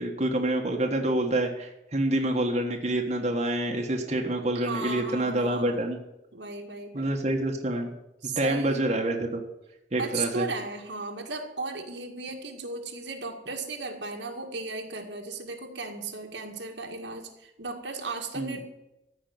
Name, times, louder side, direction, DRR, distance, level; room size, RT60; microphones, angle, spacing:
voice 1, 0.0-6.0 6.9-7.9 8.4-9.4 9.9-10.5 18.3-18.6, right 1 dB, 40° right, 1 dB, 1.5 m, -27 dB
voice 2, 4.5-5.9 6.3-7.1 8.2-8.8 10.0-18.6, right 3 dB, 80° right, 2 dB, 1.9 m, -36 dB
14.5 x 5.8 x 9.4 m, 0.90 s
head